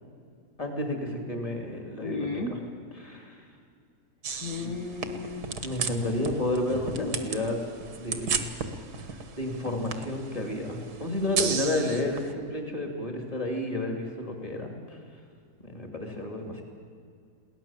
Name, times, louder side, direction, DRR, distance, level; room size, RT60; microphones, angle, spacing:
voice 1, 0.6-2.6 2.9-3.4 4.6-4.7 5.6-7.6 8.0-8.5 9.0-9.1 9.4-15.0 15.6-16.6, left 1 dB, 20° left, 2 dB, 2.9 m, -31 dB
voice 2, 2.0-2.5 4.4-5.5 7.0-7.4, left 4 dB, 60° left, 2 dB, 1.8 m, -34 dB
sound 1, 4.2-12.3, right 6 dB, 75° right, 1.9 m, -35 dB
22.0 x 17.5 x 7.4 m, 2.3 s
omnidirectional pair, 1.7 m